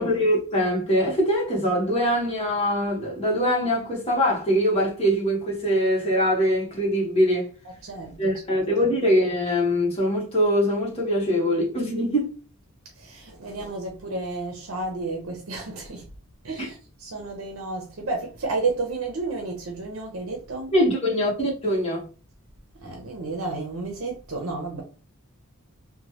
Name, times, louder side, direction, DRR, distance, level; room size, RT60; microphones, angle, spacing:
voice 1, 0.0-7.5 8.2-12.4 16.6-16.7 20.7-22.1, equal, 25° left, 1.1 m, -23 dB
voice 2, 7.8-8.9 13.0-16.1 16.4-20.7 22.8-24.8, right 3 dB, 65° right, 0.7 m, -32 dB
3.1 x 2.2 x 2.8 m
head